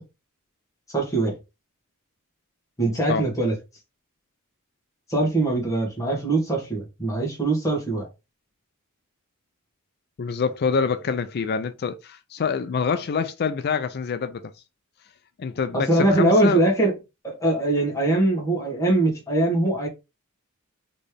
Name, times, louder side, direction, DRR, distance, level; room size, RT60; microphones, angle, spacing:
voice 1, 0.9-1.4 2.8-3.5 5.1-8.1 15.7-17.0 17.2-19.9, right 2 dB, 15° left, 1.7 m, -22 dB
voice 2, 10.2-14.5 15.4-16.6, left 5 dB, 45° left, 0.4 m, -26 dB
4.2 x 3.2 x 3.3 m
head